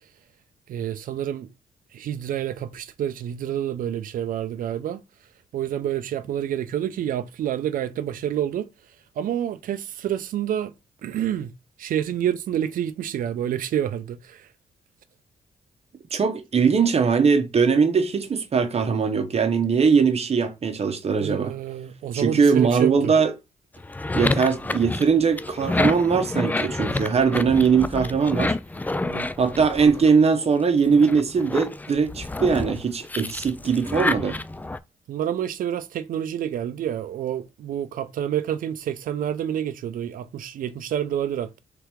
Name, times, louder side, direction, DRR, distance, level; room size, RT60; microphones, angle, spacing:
voice 1, 0.7-1.5 1.9-5.0 5.5-8.7 9.2-10.7 11.0-11.5 11.8-14.5 21.2-23.1 29.1-29.3 35.1-41.6, right 10 dB, 70° right, 0.5 m, -28 dB
voice 2, 16.1-21.5 22.1-23.3 24.1-28.6 29.4-34.4, right 5 dB, 45° right, 0.8 m, -21 dB
sound 1, 23.8-30.4 30.9-34.8, left 2 dB, 10° left, 0.3 m, -29 dB
3.4 x 2.9 x 3.4 m
supercardioid pair, 60°, 14 cm